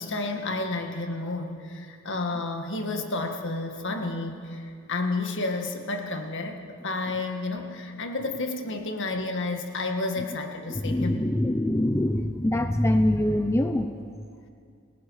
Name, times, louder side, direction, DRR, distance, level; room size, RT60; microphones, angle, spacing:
voice 1, 0.0-11.2, left 2 dB, 60° left, 4 dB, 1.9 m, -31 dB
voice 2, 10.7-13.9, left 1 dB, 15° left, 7 dB, 0.6 m, -24 dB
29.5 x 18.0 x 4.9 m, 2.3 s
head